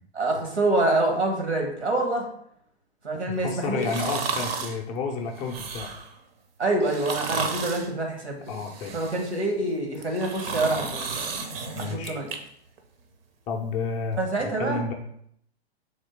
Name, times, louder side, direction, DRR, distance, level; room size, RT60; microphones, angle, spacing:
voice 1, 0.1-2.3 3.0-3.9 6.6-8.4 8.9-11.4 11.8-12.3 14.2-14.8, right 2 dB, 85° right, 2 dB, 1.3 m, -26 dB
voice 2, 3.3-5.9 8.5-8.9 11.7-12.2 13.5-14.9, left 4 dB, 25° left, 2 dB, 0.5 m, -31 dB
sound 1, 3.8-4.8 5.4-6.1 6.8-7.9 8.5-9.4 9.9-12.4 12.8-12.9, right 5 dB, 60° right, 0.7 m, -33 dB
3.6 x 3.0 x 4.3 m, 0.70 s
figure-of-eight pair, 110°, 33 cm